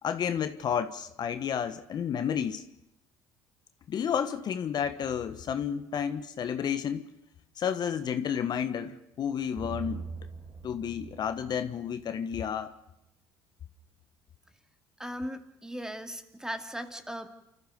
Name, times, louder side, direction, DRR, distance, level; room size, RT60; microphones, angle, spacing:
voice 1, 0.0-2.7 3.9-7.1 7.6-10.0 10.6-12.7, left 8 dB, 50° left, 1.3 m, -31 dB
sound 1, 9.6-12.2, right 5 dB, 25° right, 4.0 m, -42 dB
voice 2, 15.0-17.3, equal, 5° right, 2.2 m, -38 dB
29.5 x 14.0 x 6.7 m
hypercardioid pair, 65°, 9 cm